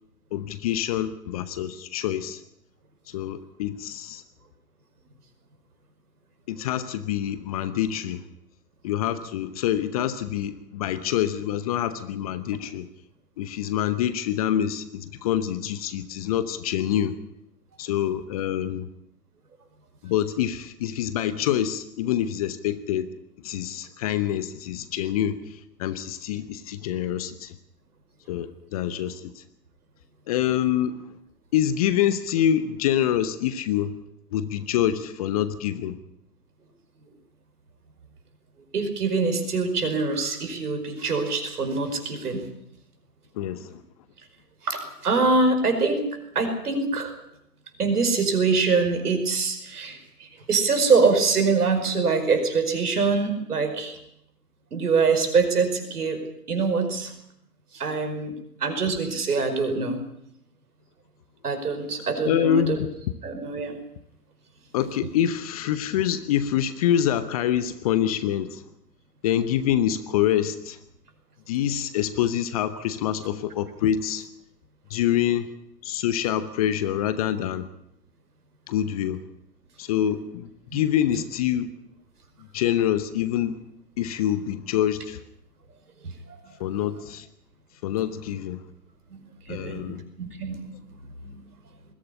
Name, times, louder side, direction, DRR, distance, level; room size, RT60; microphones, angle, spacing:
voice 1, 0.3-2.4 3.1-4.2 6.5-8.2 8.8-12.9 13.4-17.2 17.8-18.9 20.0-23.1 23.4-27.6 28.3-29.4 30.3-31.0 31.5-34.0 34.3-36.0 43.3-43.8 62.2-62.9 64.7-68.6 69.2-70.8 71.5-74.2 74.9-75.5 75.8-77.7 78.7-79.2 79.8-81.7 82.5-83.6 84.0-85.2 86.6-87.3 87.8-88.6 89.5-90.0, left 10 dB, 25° left, 13 dB, 0.8 m, -26 dB
voice 2, 38.7-42.4 44.6-46.0 46.4-47.1 47.8-54.0 54.7-56.2 56.5-57.1 57.7-58.3 58.6-60.0 61.4-62.8 63.2-63.8 80.7-80.8 89.1-90.7 91.2-91.4, right 4 dB, 70° right, 7 dB, 5.2 m, -24 dB
21.0 x 15.5 x 9.8 m, 0.76 s
figure-of-eight pair, 130°, 48 cm